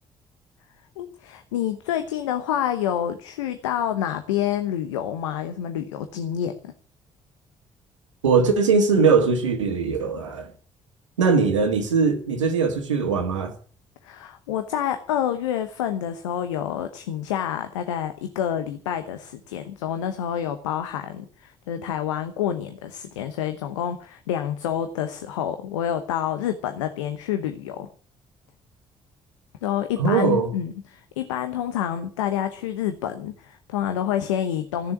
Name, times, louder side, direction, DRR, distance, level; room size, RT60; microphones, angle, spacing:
voice 1, 1.0-6.7 14.0-27.9 29.6-34.9, left 10 dB, 85° left, 1.0 m, -28 dB
voice 2, 8.2-10.5 11.2-13.5 30.0-30.5, right 5 dB, 90° right, 1.7 m, -20 dB
15.5 x 7.0 x 9.7 m
hypercardioid pair, 45°, 15 cm